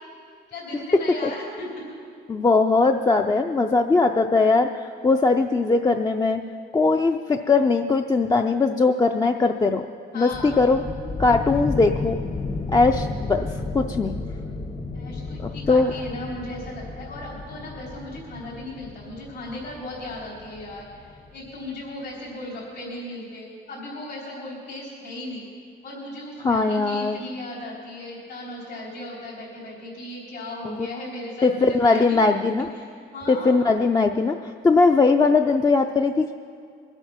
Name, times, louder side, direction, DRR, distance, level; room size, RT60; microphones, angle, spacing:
voice 1, 0.5-1.7 10.1-10.6 14.9-25.5 25.8-32.2 32.7-32.9 33.1-33.7, left 1 dB, 70° left, -6 dB, 3.9 m, -36 dB
voice 2, 2.3-6.4 6.7-9.9 10.1-10.8 11.2-12.2 12.7-13.5 13.7-14.1 15.4-15.9 26.4-27.2 30.7-30.9 31.4-32.7 33.3-36.3, left 3 dB, 20° left, 4 dB, 0.5 m, -20 dB
sound 1, 10.3-21.8, left 3 dB, 45° left, 1.3 m, -33 dB
22.5 x 8.1 x 5.8 m, 2.3 s
cardioid pair, 115°, 18 cm